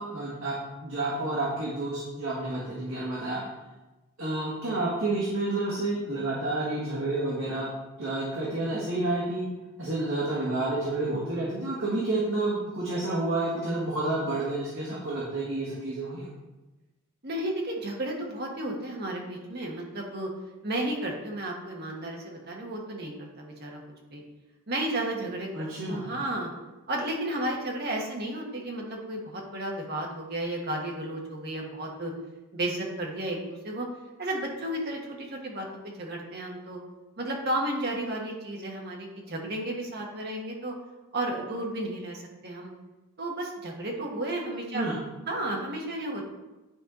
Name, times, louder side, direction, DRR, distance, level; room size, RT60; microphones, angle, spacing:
voice 1, 0.0-3.4 4.2-7.7 8.0-9.5 9.8-16.3 25.5-26.1 44.7-45.0, right 2 dB, 70° right, -7 dB, 1.8 m, -30 dB
voice 2, 17.2-20.3 20.6-23.8 24.1-24.2 24.7-26.5 26.9-32.1 32.5-33.9 34.2-36.8 37.2-40.7 41.1-42.7 43.2-44.8 45.3-46.2, right 1 dB, 45° right, -1 dB, 1.3 m, -33 dB
9.9 x 4.5 x 3.8 m, 1.1 s
head